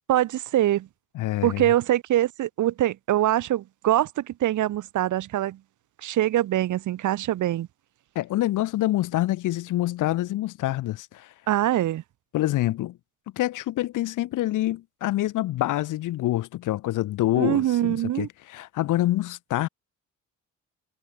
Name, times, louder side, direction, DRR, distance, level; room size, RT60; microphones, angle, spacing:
voice 1, 0.1-0.9 1.4-5.6 6.0-7.7 11.5-12.0 17.4-18.3, right 13 dB, 75° right, 2.5 m, -23 dB
voice 2, 1.2-1.6 8.2-11.3 12.3-13.0 13.3-19.7, left 15 dB, 85° left, 5.2 m, -26 dB
cardioid pair, 90°, 30 cm